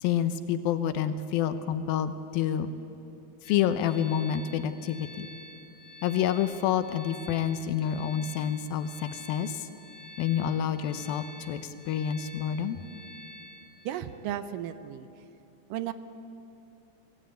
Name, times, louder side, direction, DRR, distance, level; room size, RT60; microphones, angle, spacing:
voice 1, 0.0-2.7 3.4-5.3 6.0-9.7 10.2-12.8, left 9 dB, 90° left, 10 dB, 2.7 m, -28 dB
sound 1, 3.4-13.9, left 1 dB, 20° left, 5.2 m, -48 dB
voice 2, 13.9-15.1 15.7-15.9, right 11 dB, 75° right, 11 dB, 2.2 m, -34 dB
24.0 x 15.0 x 9.0 m, 2.8 s
omnidirectional pair, 4.1 m